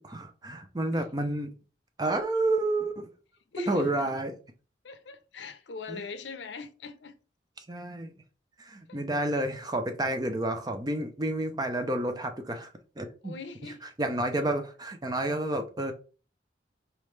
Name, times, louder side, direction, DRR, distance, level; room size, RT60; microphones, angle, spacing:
voice 1, 0.0-1.5 2.0-3.1 3.6-4.3 5.9-6.0 7.6-8.1 8.6-12.7 13.0-13.3 14.0-15.9, right 1 dB, 20° right, 0.6 m, -30 dB
voice 2, 3.5-4.2 4.8-7.1 8.9-9.0 13.2-13.8 14.3-14.4, left 4 dB, 75° left, 0.7 m, -42 dB
4.1 x 3.5 x 3.2 m
head